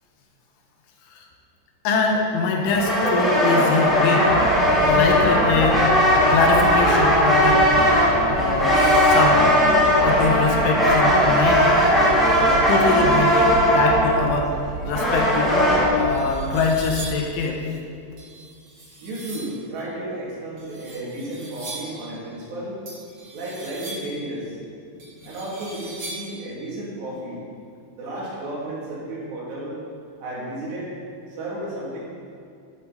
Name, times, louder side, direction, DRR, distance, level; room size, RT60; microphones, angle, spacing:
voice 1, 1.9-4.3 4.8-5.8 6.1-7.7 8.3-9.5 10.0-11.6 12.4-14.5 14.8-15.6 15.9-17.6, left 4 dB, 80° left, 1 dB, 3.5 m, -23 dB
sound 1, 2.7-15.9, equal, ahead, 1.2 m, -18 dB
sound 2, 4.3-17.2, right 6 dB, 80° right, 2.5 m, -32 dB
sound 3, 16.0-17.3 18.2-19.6 20.6-22.0 22.8-24.2 25.0-26.4, right 2 dB, 35° right, 2.2 m, -39 dB
voice 2, 19.0-22.8 23.3-24.6 25.2-27.4 27.9-29.8 30.2-30.9 31.4-32.0, right 1 dB, 65° right, -6 dB, 4.6 m, -33 dB
11.5 x 11.0 x 4.1 m, 2.4 s
omnidirectional pair, 5.5 m